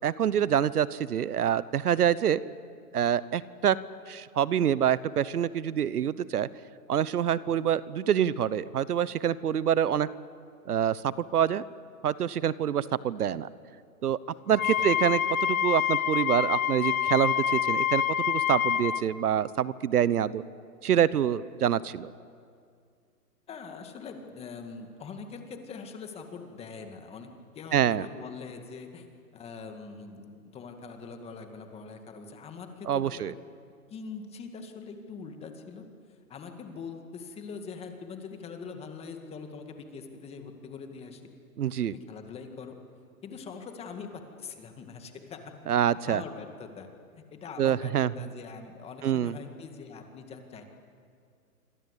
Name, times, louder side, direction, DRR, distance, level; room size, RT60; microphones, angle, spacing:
voice 1, 0.0-2.4 2.9-3.8 4.1-6.5 6.9-10.1 10.7-11.6 12.0-13.5 14.0-14.2 14.5-20.4 20.8-22.1 27.7-28.1 32.9-33.3 41.6-41.9 45.7-46.2 47.6-48.1 49.0-49.4, right 9 dB, 70° right, 18 dB, 1.1 m, -26 dB
Wind instrument woodwind instrument, 14.5-19.0, left 9 dB, 60° left, 1.4 m, -27 dB
voice 2, 14.5-14.9 23.5-27.3 27.5-29.0 29.3-33.3 33.9-35.8 36.1-41.2 41.9-42.7 43.2-45.7 46.1-46.9 47.1-50.6, left 5 dB, 15° left, 5 dB, 2.1 m, -43 dB
27.0 x 25.5 x 8.3 m, 2.2 s
hypercardioid pair, 150°, 47 cm